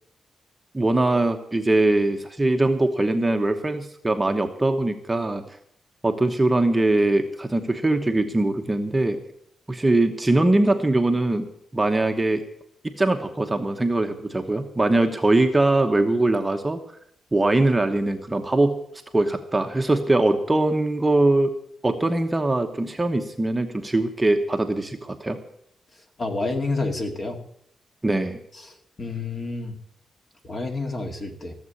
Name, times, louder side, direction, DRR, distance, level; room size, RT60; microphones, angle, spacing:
voice 1, 0.7-5.4 6.0-9.2 9.7-11.5 11.7-12.4 12.8-16.8 17.3-18.8 19.1-21.5 21.8-25.4 28.0-28.4, right 2 dB, 15° right, 5 dB, 1.0 m, -22 dB
voice 2, 26.2-27.4 29.0-29.7 30.4-31.5, left 3 dB, 35° left, 4 dB, 2.2 m, -28 dB
15.5 x 7.5 x 8.2 m, 0.72 s
wide cardioid pair, 135°, 0 cm